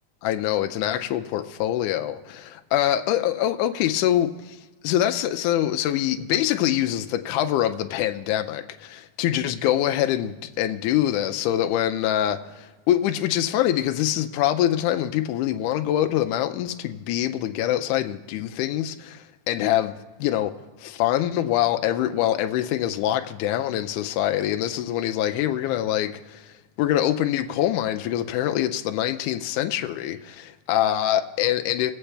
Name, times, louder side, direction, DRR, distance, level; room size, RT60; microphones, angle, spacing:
voice 1, 0.2-4.6 4.8-20.5 20.8-26.5 26.8-31.9, left 12 dB, 85° left, 2.1 m, -24 dB
22.0 x 8.0 x 3.3 m
omnidirectional pair, 3.5 m